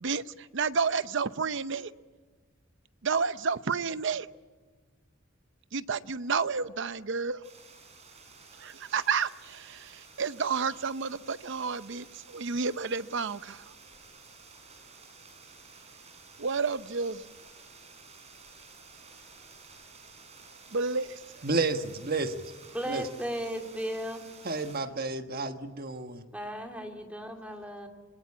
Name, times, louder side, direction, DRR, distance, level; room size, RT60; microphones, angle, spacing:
voice 1, 0.0-1.9 3.0-4.3 5.7-7.4 8.6-13.6 16.4-17.2 20.7-21.2, right 5 dB, 65° right, 14 dB, 0.7 m, -30 dB
sound 1, 7.4-24.8, right 4 dB, 35° right, 5.9 m, -52 dB
voice 2, 21.4-22.4 22.9-23.1 24.4-26.2, right 3 dB, 50° right, 7 dB, 1.4 m, -31 dB
voice 3, 22.7-24.2 26.3-27.9, equal, 5° right, 2 dB, 2.7 m, -35 dB
26.5 x 20.0 x 8.5 m, 1.4 s
head